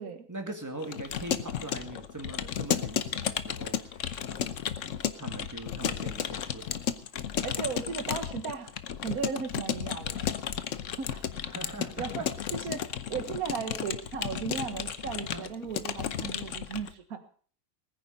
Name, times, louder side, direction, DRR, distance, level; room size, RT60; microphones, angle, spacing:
voice 1, 0.3-4.7 5.2-6.9 11.5-12.3 15.3-15.5, right 1 dB, 10° right, 4 dB, 2.1 m, -41 dB
Keyboard (musical) / Computer keyboard, 0.8-16.9, left 9 dB, 55° left, 1.0 m, -33 dB
voice 2, 7.4-8.7 9.0-10.3 11.0-11.3 12.0-17.3, right 6 dB, 60° right, 8 dB, 1.9 m, -36 dB
19.5 x 9.8 x 5.2 m, 0.44 s
omnidirectional pair, 1.8 m